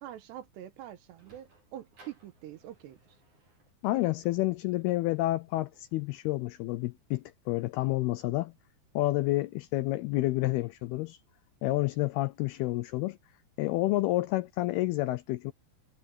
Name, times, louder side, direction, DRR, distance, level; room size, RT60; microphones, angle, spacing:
voice 1, 0.0-3.1, right 12 dB, 75° right, 3.3 m, -45 dB
Sliding door, 1.0-7.3, right 3 dB, 45° right, 9.5 m, -64 dB
voice 2, 3.8-8.5 9.0-11.2 11.6-13.2 13.6-15.5, left 18 dB, 80° left, 2.3 m, -29 dB
omnidirectional pair, 5.0 m